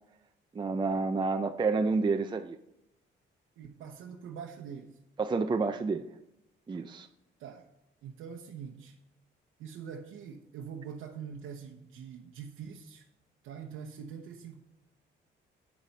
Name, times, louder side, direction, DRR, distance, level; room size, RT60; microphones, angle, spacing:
voice 1, 0.5-2.6 5.2-6.1 6.7-7.1, right 4 dB, 25° right, 7 dB, 0.5 m, -29 dB
voice 2, 3.6-5.0 7.4-7.6 8.0-9.0 9.6-13.0 13.4-14.6, right 7 dB, 85° right, 1 dB, 0.9 m, -44 dB
8.4 x 7.2 x 5.3 m, 0.84 s
cardioid pair, 90°, 20 cm